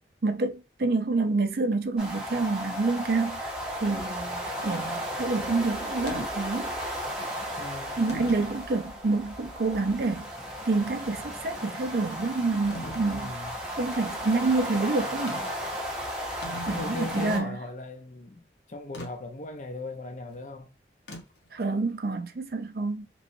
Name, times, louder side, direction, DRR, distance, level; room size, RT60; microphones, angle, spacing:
voice 1, 0.2-6.7 8.0-10.3 10.7-13.3 13.7-15.4 16.7-17.6 21.5-23.1, right 3 dB, 55° right, 0.5 m, -28 dB
sound 1, 2.0-17.4, equal, 5° right, 0.7 m, -35 dB
sound 2, 6.1-6.3 7.2-7.3 8.1-8.6 9.2-9.3 12.7-13.1 15.3-15.6 16.0-16.1 16.3-17.4 18.9-19.1 21.1-21.5, left 1 dB, 90° left, 0.9 m, -40 dB
voice 2, 7.6-8.1 13.1-13.5 16.7-20.7, left 2 dB, 45° left, 0.6 m, -38 dB
3.0 x 3.0 x 2.7 m
head